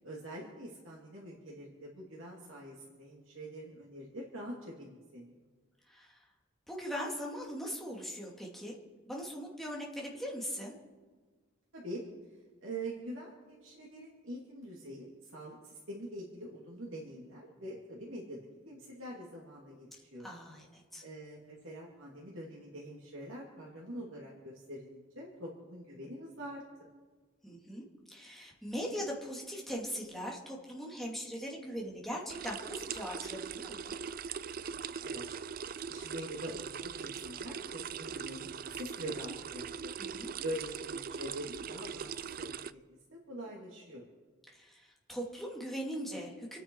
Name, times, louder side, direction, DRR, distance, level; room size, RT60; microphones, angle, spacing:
voice 1, 0.0-5.4 11.7-12.0 12.6-20.3 21.0-26.6 34.6-35.2 35.5-40.0 40.4-42.5 43.1-44.1, right 1 dB, 75° right, -3 dB, 2.7 m, -44 dB
voice 2, 5.9-6.3 6.7-8.8 9.0-10.7 20.2-21.0 27.4-34.0 40.0-40.3 44.5-46.6, equal, ahead, -3 dB, 2.6 m, -40 dB
sound 1, 32.3-42.7, right 7 dB, 45° right, 0.4 m, -41 dB
28.5 x 9.8 x 4.7 m, 1.4 s
head